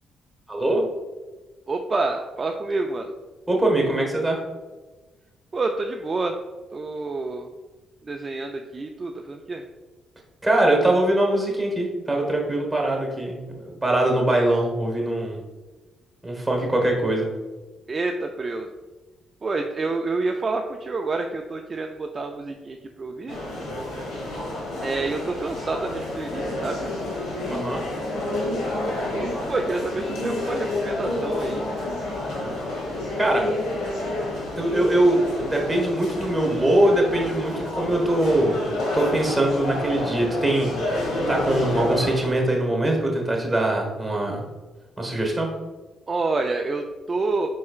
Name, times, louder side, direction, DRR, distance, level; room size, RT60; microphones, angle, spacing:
voice 1, 0.5-0.8 3.5-4.4 10.4-15.4 16.2-17.3 27.5-27.8 33.2-33.5 34.6-38.6 38.9-44.4 45.0-45.5, right 1 dB, 10° right, 0 dB, 1.3 m, -22 dB
voice 2, 1.7-3.1 5.5-6.4 6.7-7.5 8.0-9.6 17.9-18.7 19.4-23.4 24.8-26.9 29.1-31.7 46.1-47.5, right 3 dB, 35° right, 3 dB, 0.3 m, -28 dB
sound 1, 23.3-42.3, left 1 dB, 90° left, 1.3 m, -29 dB
4.6 x 4.3 x 2.3 m, 1.2 s
cardioid pair, 90°, 0 cm